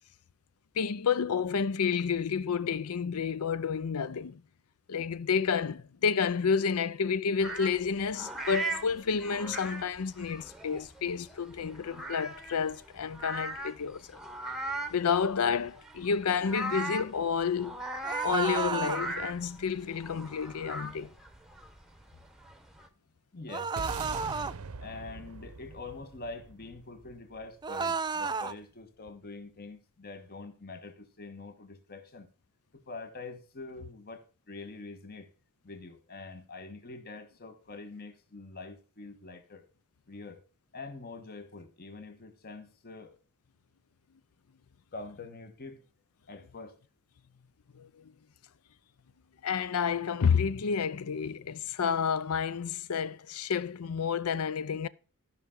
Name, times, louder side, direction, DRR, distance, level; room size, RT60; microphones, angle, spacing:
voice 1, 0.8-4.4 4.9-14.2 14.9-17.8 18.2-21.1 47.7-47.9 49.4-54.9, left 6 dB, 75° left, 0.5 m, -30 dB
sound 1, 7.4-22.9, right 2 dB, ahead, 0.9 m, -40 dB
sound 2, 18.0-19.0 23.5-24.5 27.6-28.5, right 5 dB, 20° right, 0.3 m, -32 dB
voice 2, 23.3-23.7 24.8-32.3 32.7-35.3 35.6-39.7 40.1-40.4 40.7-43.1 44.9-45.8 46.3-46.8, left 3 dB, 45° left, 1.2 m, -45 dB
sound 3, 23.8-28.2, right 4 dB, 80° right, 0.8 m, -43 dB
14.0 x 5.7 x 3.7 m
head